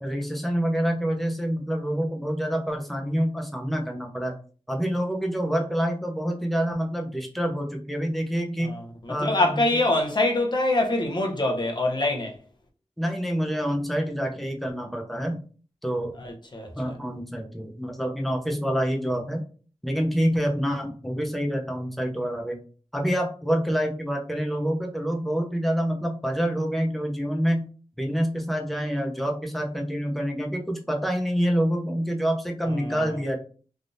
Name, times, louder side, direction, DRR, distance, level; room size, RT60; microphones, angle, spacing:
voice 1, 0.0-4.3 4.7-8.8 9.1-9.6 13.0-15.4 15.8-16.1 16.7-19.4 19.8-22.6 22.9-27.7 28.0-33.4, equal, ahead, 0.6 m, -27 dB
voice 2, 9.1-12.3 16.2-16.9 32.8-33.1, left 2 dB, 40° left, 0.8 m, -25 dB
3.4 x 2.4 x 2.6 m
wide cardioid pair, 80°, 11 cm